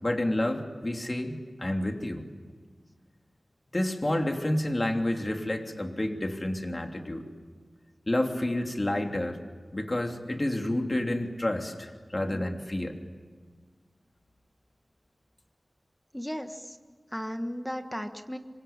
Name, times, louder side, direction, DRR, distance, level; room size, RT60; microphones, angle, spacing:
voice 1, 0.0-2.2 3.7-7.3 8.1-9.4 9.7-12.9, left 1 dB, 30° left, 3 dB, 3.1 m, -29 dB
voice 2, 16.1-16.8 17.1-18.4, equal, 5° left, 6 dB, 1.4 m, -35 dB
26.5 x 25.0 x 8.9 m, 1.5 s
wide cardioid pair, 75°, 0 cm